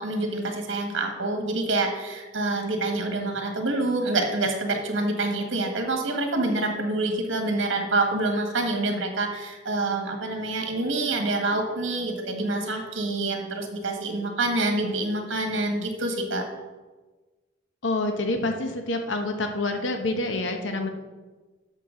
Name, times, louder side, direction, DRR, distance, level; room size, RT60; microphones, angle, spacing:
voice 1, 0.0-16.4, right 2 dB, 80° right, 4 dB, 1.5 m, -27 dB
voice 2, 17.8-20.9, left 2 dB, 70° left, 5 dB, 0.9 m, -27 dB
11.5 x 5.9 x 3.7 m, 1.3 s
head